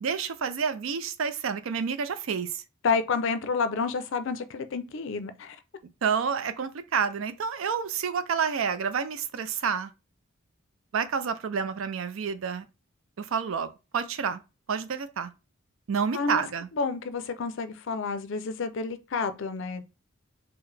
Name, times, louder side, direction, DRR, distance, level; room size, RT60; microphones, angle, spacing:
voice 1, 0.0-2.6 6.0-9.9 10.9-12.7 13.2-14.4 14.7-15.3 15.9-16.7, right 6 dB, 65° right, 0.4 m, -29 dB
voice 2, 2.8-5.6 16.1-16.4 16.7-19.8, left 4 dB, 60° left, 0.4 m, -29 dB
4.5 x 2.1 x 3.2 m
head